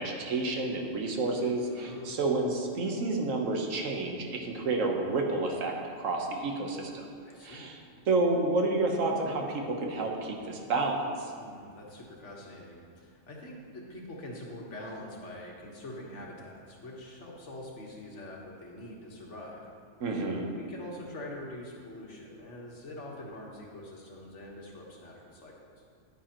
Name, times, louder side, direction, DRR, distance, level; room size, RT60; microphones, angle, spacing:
voice 1, 0.0-7.0 7.4-7.8 8.1-11.3 20.0-20.5, right 2 dB, 80° right, 2 dB, 1.4 m, -30 dB
voice 2, 1.7-2.2 7.2-7.7 11.4-19.6 20.5-25.5, left 1 dB, 65° left, -2 dB, 1.6 m, -44 dB
10.0 x 9.2 x 3.0 m, 2.2 s
omnidirectional pair, 1.3 m